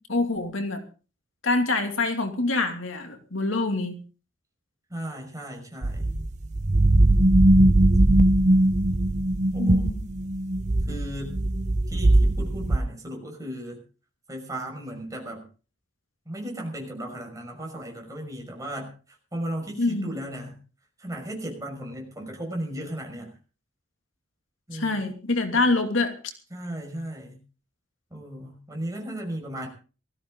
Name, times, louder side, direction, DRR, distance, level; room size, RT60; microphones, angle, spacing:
voice 1, 0.1-0.8 1.4-4.0 9.6-10.0 19.8-20.1 24.7-26.1, left 3 dB, 75° left, 5 dB, 2.7 m, -25 dB
voice 2, 4.9-6.1 9.5-9.9 10.9-11.4 11.9-13.8 14.3-15.5 16.3-18.9 19.3-20.6 21.0-23.4 24.7-25.1 25.5-25.6 26.5-27.4 28.1-29.7, right 1 dB, 15° right, 1 dB, 5.9 m, -36 dB
sound 1, 5.8-12.8, right 1 dB, 35° right, 0.7 m, -20 dB
19.5 x 15.5 x 3.9 m, 0.37 s
head